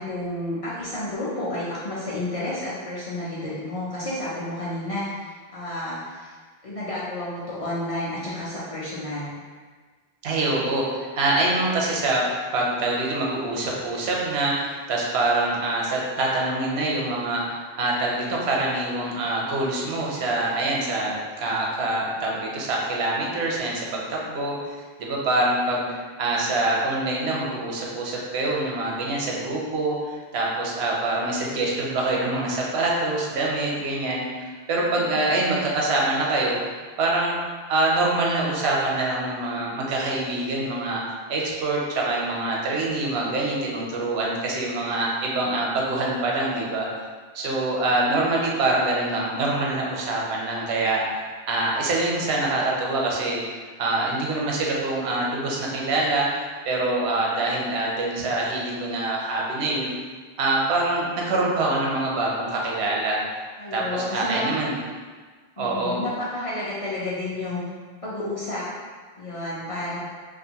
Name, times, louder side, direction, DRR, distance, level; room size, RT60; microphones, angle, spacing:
voice 1, 0.0-6.3 6.6-9.3 34.7-35.0 35.3-35.4 63.6-64.5 65.6-67.6 68.0-68.7 69.2-70.0, left 1 dB, 50° left, -8 dB, 0.4 m, -31 dB
voice 2, 10.2-12.2 12.5-24.7 25.0-36.6 37.0-37.4 37.7-46.9 47.3-51.0 51.5-53.4 53.8-56.3 56.6-59.9 60.4-63.2 63.7-64.8 65.6-66.0, right 2 dB, 85° right, -3 dB, 0.9 m, -25 dB
2.5 x 2.4 x 2.7 m, 1.5 s
omnidirectional pair, 1.1 m